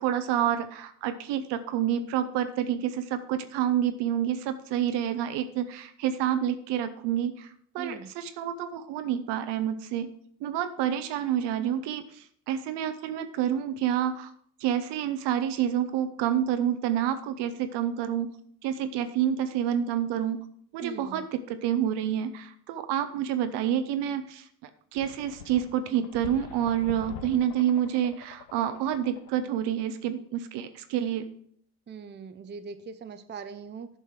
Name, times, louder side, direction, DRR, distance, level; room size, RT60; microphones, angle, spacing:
voice 1, 0.0-7.5 7.7-10.1 10.4-14.3 14.6-18.3 18.6-20.4 20.7-31.3, right 10 dB, 60° right, 10 dB, 0.9 m, -28 dB
voice 2, 7.8-8.1 20.8-21.3 31.9-33.9, right 5 dB, 20° right, 9 dB, 0.7 m, -41 dB
sound 1, 25.0-29.5, left 9 dB, 80° left, 0.7 m, -45 dB
10.5 x 5.5 x 4.7 m, 0.62 s
figure-of-eight pair, 55°, 48 cm